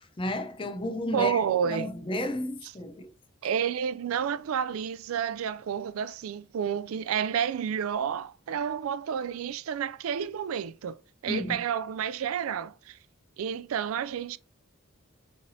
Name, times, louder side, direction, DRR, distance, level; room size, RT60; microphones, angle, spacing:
voice 1, 0.2-1.4 1.6-3.1 11.3-11.6, left 1 dB, 25° left, 0.5 m, -32 dB
voice 2, 1.1-1.9 2.6-2.7 3.4-11.0 11.2-13.0 13.4-14.4, right 8 dB, 85° right, 0.3 m, -30 dB
5.5 x 3.2 x 2.6 m
head